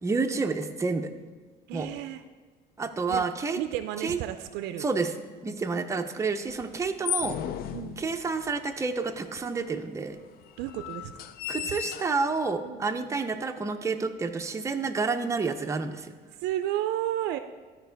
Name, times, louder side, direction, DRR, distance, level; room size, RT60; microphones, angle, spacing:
voice 1, 0.0-1.1 1.7-1.9 2.8-3.6 4.0-4.2 4.8-5.1 5.4-7.4 8.0-10.2 11.5-16.2, right 4 dB, 15° right, 6 dB, 0.5 m, -29 dB
voice 2, 1.7-2.2 3.1-3.3 3.6-4.9 5.5-5.8 7.7-8.0 10.6-11.2 11.5-11.8 12.6-12.8 16.4-17.4, right 12 dB, 90° right, 10 dB, 0.4 m, -32 dB
sound 1, 6.5-8.6 9.4-9.5 9.6-9.7 10.4-12.5, left 10 dB, 65° left, 0.4 m, -35 dB
13.0 x 4.5 x 3.4 m, 1.4 s
cardioid pair, 110°, 17 cm